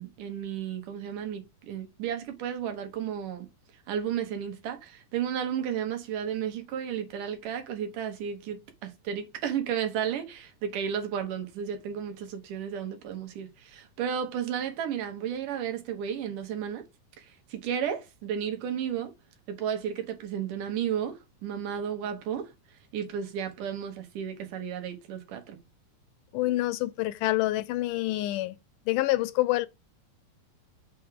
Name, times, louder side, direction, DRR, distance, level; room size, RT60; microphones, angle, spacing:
voice 1, 0.0-3.5 3.9-16.8 17.2-19.1 19.5-25.6, right 8 dB, 75° right, 2.8 m, -33 dB
voice 2, 26.3-28.6 28.9-29.7, left 17 dB, 80° left, 2.1 m, -27 dB
7.1 x 3.6 x 4.8 m
omnidirectional pair, 3.7 m